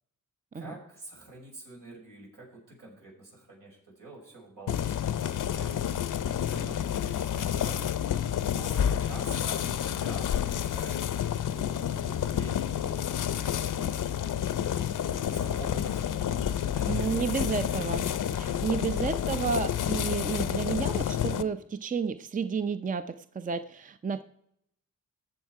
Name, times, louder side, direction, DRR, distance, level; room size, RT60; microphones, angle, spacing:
voice 1, 0.5-5.0 5.3-5.8 6.4-7.8 8.6-9.6 9.9-13.9 14.5-16.2 16.6-17.2, right 2 dB, 80° right, -3 dB, 6.1 m, -47 dB
sound 1, 4.7-21.4, left 9 dB, 70° left, 0.6 m, -29 dB
voice 2, 16.9-18.1 18.3-24.2, right 5 dB, 25° right, 11 dB, 0.5 m, -31 dB
18.5 x 7.2 x 4.7 m, 0.74 s
wide cardioid pair, 95°, 32 cm